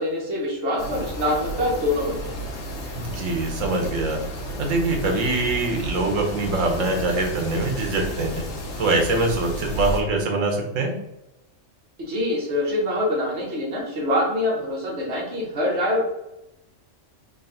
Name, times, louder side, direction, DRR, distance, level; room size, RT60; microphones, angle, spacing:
voice 1, 0.0-2.4 12.0-16.0, left 1 dB, 60° right, -2 dB, 1.4 m, -25 dB
sound 1, 0.8-10.0, equal, 85° left, 1.2 m, -32 dB
voice 2, 2.9-4.2 4.6-8.4 8.8-11.0, right 2 dB, 80° right, 2 dB, 1.2 m, -23 dB
3.8 x 2.3 x 3.8 m, 0.90 s
omnidirectional pair, 1.3 m